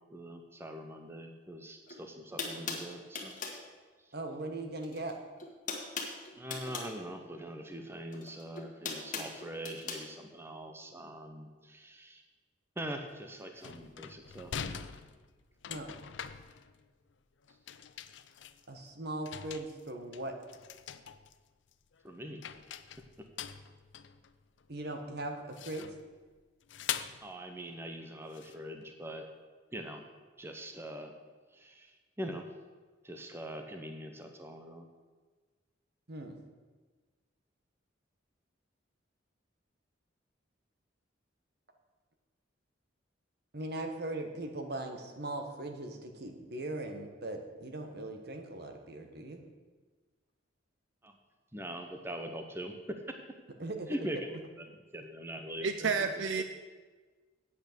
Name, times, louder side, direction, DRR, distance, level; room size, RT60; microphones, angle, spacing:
voice 1, 0.1-3.3 4.0-4.1 6.4-12.2 12.8-14.9 22.0-22.6 23.2-23.3 27.2-29.2 29.7-30.0 30.4-31.1 31.5-32.4 33.0-34.9 51.0-51.2 51.5-53.0 53.9-56.4, right 1 dB, 10° right, 5 dB, 0.7 m, -43 dB
sound 1, 1.9-2.0 2.4-3.6 4.8-5.1 5.4-6.9 8.1-10.0, left 4 dB, 40° left, 1.6 m, -39 dB
voice 2, 4.1-5.2 15.7-15.9 18.7-20.4 24.7-25.9 36.1-36.4 43.5-49.4 53.6-54.0, right 2 dB, 55° right, 5 dB, 1.3 m, -39 dB
sound 2, 13.1-13.2 13.5-17.1 17.4-18.9 19.3-21.4 21.7-22.1 22.4-24.8 25.5-26.1 26.7-27.3 28.3-28.6, left 8 dB, 65° left, 0.5 m, -43 dB
voice 3, 55.6-56.4, right 5 dB, 70° right, 9 dB, 0.5 m, -30 dB
8.6 x 8.3 x 6.8 m, 1.4 s
head